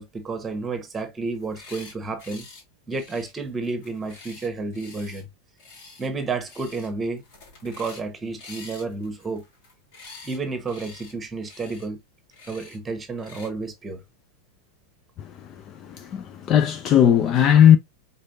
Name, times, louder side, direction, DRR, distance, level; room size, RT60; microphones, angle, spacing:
voice 1, 0.0-2.4 2.9-5.3 6.0-7.2 7.6-9.4 10.2-12.0 12.5-14.0, right 3 dB, 15° right, 1.3 m, -31 dB
sound 1, 1.4-2.6 2.9-5.2 5.6-6.1 6.4-6.9 7.2-8.1 8.4-10.4 10.7-11.1 11.4-11.9 12.3-12.8 13.2-13.5, left 3 dB, 50° left, 2.0 m, -46 dB
voice 2, 15.9-17.8, left 9 dB, 30° left, 0.5 m, -17 dB
5.0 x 4.0 x 2.6 m
figure-of-eight pair, 90°, 0 cm